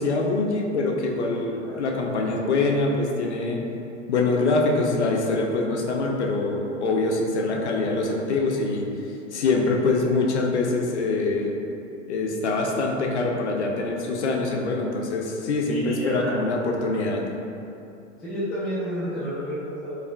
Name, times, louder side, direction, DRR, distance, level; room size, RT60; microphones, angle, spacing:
voice 1, 0.0-3.6 4.1-8.9 9.3-11.5 12.1-17.2, left 3 dB, 60° left, 0 dB, 0.6 m, -24 dB
voice 2, 15.6-16.4 18.2-19.9, right 1 dB, ahead, -12 dB, 0.3 m, -30 dB
4.7 x 2.4 x 2.2 m, 2.8 s
figure-of-eight pair, 95°, 38 cm